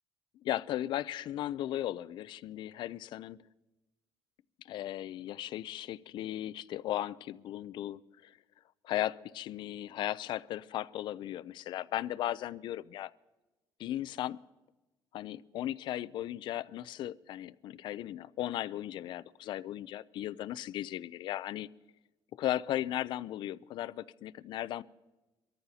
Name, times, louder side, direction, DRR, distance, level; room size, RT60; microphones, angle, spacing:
voice 1, 0.4-3.4 4.6-8.4 8.8-13.1 13.8-14.4 15.1-21.7 22.3-24.8, left 13 dB, 55° left, 15 dB, 0.4 m, -36 dB
23.5 x 13.5 x 2.8 m, 1.1 s
cardioid pair, 145°, 9 cm